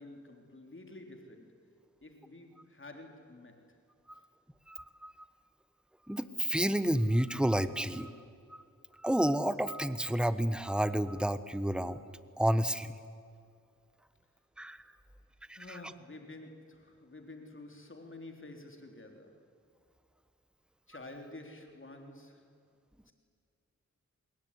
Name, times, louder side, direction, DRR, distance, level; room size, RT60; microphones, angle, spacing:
voice 1, 0.0-1.6 2.0-3.6 15.6-19.4 20.9-22.5 23.1-23.2, left 2 dB, 40° left, 4 dB, 3.5 m, -50 dB
voice 2, 4.7-5.1 6.1-8.1 9.0-12.0 12.4-12.9 14.6-14.8 15.5-15.8, right 1 dB, 5° right, 13 dB, 1.2 m, -30 dB
26.0 x 21.5 x 9.8 m, 2.3 s
wide cardioid pair, 70°, 31 cm